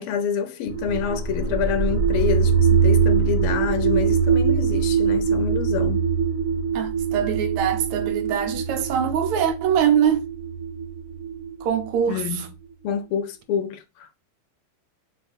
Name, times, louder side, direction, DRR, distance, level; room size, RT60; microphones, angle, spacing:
voice 1, 0.0-6.0 12.1-12.4 12.8-14.1, left 8 dB, 85° left, 1.6 m, -27 dB
sound 1, 0.7-12.5, right 6 dB, 60° right, 1.1 m, -23 dB
voice 2, 6.7-10.2 11.6-12.5, right 9 dB, 85° right, 1.6 m, -23 dB
5.9 x 2.5 x 3.5 m
omnidirectional pair, 2.4 m